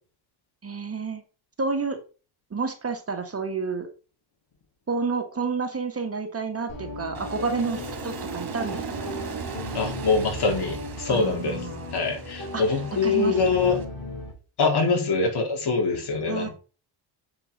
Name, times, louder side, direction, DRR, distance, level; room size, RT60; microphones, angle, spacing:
voice 1, 0.6-1.2 1.6-2.0 2.5-3.9 4.9-9.1 11.1-12.0 12.5-12.8 13.0-13.4 16.3-16.5, right 4 dB, 30° right, 5 dB, 1.8 m, -30 dB
sound 1, 6.7-14.3, left 3 dB, 35° left, 5.1 m, -37 dB
Aircraft, 7.1-13.8, right 6 dB, 50° right, 2.5 m, -37 dB
voice 2, 9.7-11.6 11.9-13.8 14.6-16.5, left 4 dB, 55° left, 2 dB, 3.8 m, -24 dB
7.4 x 6.8 x 5.4 m, 0.35 s
cardioid pair, 110°, 47 cm